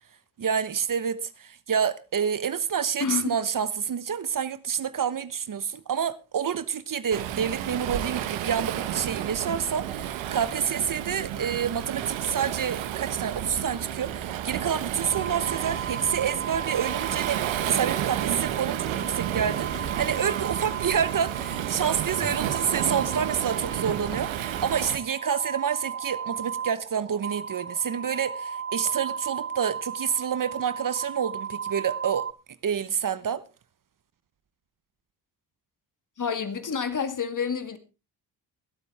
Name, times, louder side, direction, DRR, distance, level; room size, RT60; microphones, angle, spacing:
voice 1, 0.4-32.2 32.6-33.4, right 7 dB, 45° right, 1.1 m, -28 dB
voice 2, 3.0-3.3 36.2-37.8, left 6 dB, 45° left, 2.2 m, -28 dB
Waves surf, 7.1-25.0, right 11 dB, 85° right, 1.3 m, -31 dB
sound 1, 15.0-32.3, right 7 dB, 30° right, 0.8 m, -36 dB
sound 2, 19.3-24.7, left 1 dB, 10° left, 1.7 m, -46 dB
24.0 x 8.3 x 3.5 m
supercardioid pair, 55°, 45 cm